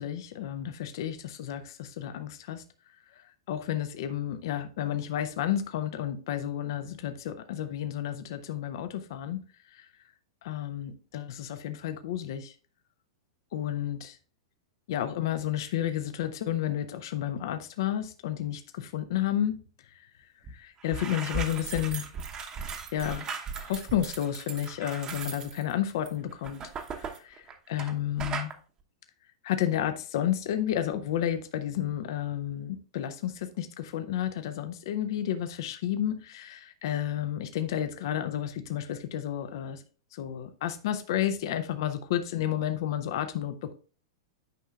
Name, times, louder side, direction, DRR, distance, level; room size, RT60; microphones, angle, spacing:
voice 1, 0.0-2.6 3.1-3.2 3.5-9.4 9.7-9.9 10.4-12.5 13.5-14.2 14.9-19.6 19.8-22.1 22.5-22.6 22.9-23.3 23.6-26.6 26.9-28.5 29.4-39.8 40.1-43.7, left 11 dB, 60° left, 0.6 m, -31 dB
sound 1, 20.4-20.6 20.8-27.9 28.2-28.5, right 5 dB, 30° right, 1.0 m, -37 dB
9.2 x 5.5 x 2.4 m
hypercardioid pair, 100°, 3 cm